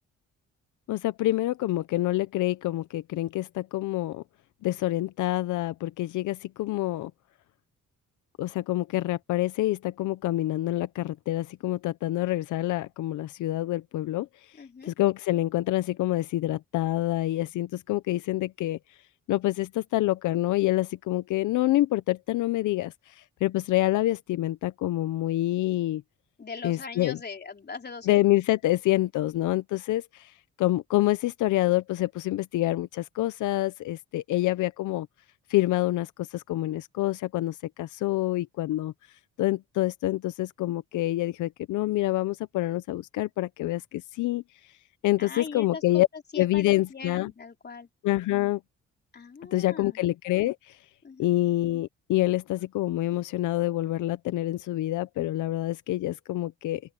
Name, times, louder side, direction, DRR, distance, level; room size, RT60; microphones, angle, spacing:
voice 1, 0.9-4.2 4.6-7.1 8.4-14.3 14.8-18.8 19.3-26.0 26.6-27.2 28.1-35.1 35.5-38.9 39.4-44.4 45.0-46.1 46.4-47.3 48.0-48.6 49.5-50.8 51.2-56.8, left 16 dB, 80° left, 0.8 m, -27 dB
voice 2, 14.6-14.9 26.4-28.2 45.2-46.0 46.3-47.9 49.1-50.0 51.0-51.3, left 5 dB, 35° left, 3.6 m, -40 dB
open air
cardioid pair, 90°, 30 cm